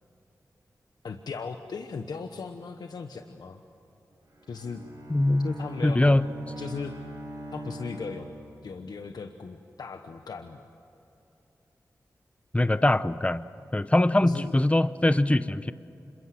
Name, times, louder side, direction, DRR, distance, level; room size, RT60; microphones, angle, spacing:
voice 1, 1.0-3.6 4.5-4.8 5.4-6.3 6.6-6.9 7.5-8.3 8.6-10.7 14.2-14.5, left 5 dB, 85° left, 6 dB, 1.1 m, -37 dB
Bowed string instrument, 4.3-9.0, right 1 dB, 70° right, 4.7 m, -42 dB
voice 2, 5.1-5.5 5.8-6.2 12.5-13.4 13.7-15.7, left 1 dB, 20° left, 14 dB, 0.8 m, -22 dB
27.0 x 22.5 x 7.8 m, 3.0 s
cardioid pair, 40°, 7 cm